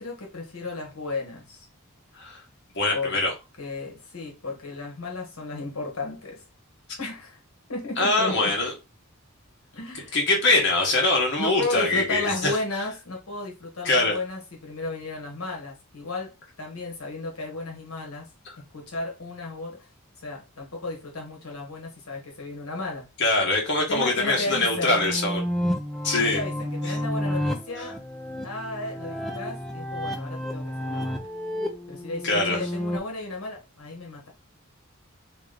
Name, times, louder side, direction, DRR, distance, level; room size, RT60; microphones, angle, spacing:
voice 1, 0.0-1.7 2.9-3.2 3.6-6.4 7.0-7.4 7.7-8.5 9.7-10.2 11.4-18.3 18.6-19.9 20.2-23.1 23.9-25.0 26.2-28.0 28.4-31.2 31.9-34.3, left 2 dB, 80° left, 1.3 m, -34 dB
voice 2, 2.7-3.3 8.0-8.7 9.9-12.5 13.8-14.2 18.4-18.5 23.2-25.4 26.0-26.4 26.8-27.0 27.8-27.9 32.2-32.7, left 2 dB, 55° left, 1.5 m, -23 dB
sound 1, 24.1-33.0, equal, ahead, 0.4 m, -31 dB
3.0 x 3.0 x 3.8 m
head